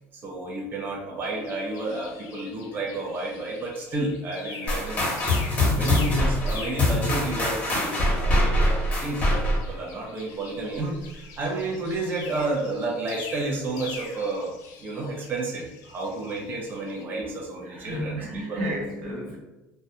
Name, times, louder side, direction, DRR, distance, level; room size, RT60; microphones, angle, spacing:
voice 1, 0.1-5.1 5.7-11.0 11.4-14.5 14.8-18.6, right 2 dB, 35° right, -2 dB, 0.5 m, -31 dB
sound 1, 1.2-7.9 8.2-17.0, left 4 dB, 60° left, 0.4 m, -44 dB
sound 2, 4.7-9.7, left 1 dB, 25° left, 0.8 m, -23 dB
voice 2, 17.6-19.4, equal, 85° right, -3 dB, 0.8 m, -32 dB
2.2 x 2.1 x 2.7 m, 1.0 s
cardioid pair, 130°, 6 cm